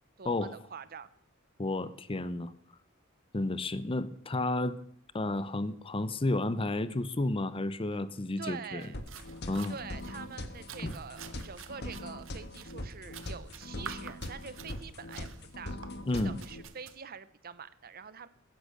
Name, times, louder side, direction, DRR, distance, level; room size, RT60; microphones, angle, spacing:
voice 1, 0.2-1.1 8.4-9.0 9.7-15.3 15.6-15.8 16.1-18.3, right 6 dB, 50° right, 15 dB, 0.8 m, -45 dB
voice 2, 1.6-2.5 3.3-4.8 5.1-8.8 9.5-9.8 10.8-10.9 16.1-16.4, left 2 dB, 25° left, 15 dB, 0.7 m, -31 dB
sound 1, 8.8-17.0, right 7 dB, 70° right, 1.1 m, -50 dB
sound 2, 8.9-16.6, left 1 dB, 55° left, 1.5 m, -42 dB
14.5 x 10.5 x 6.6 m, 0.66 s
head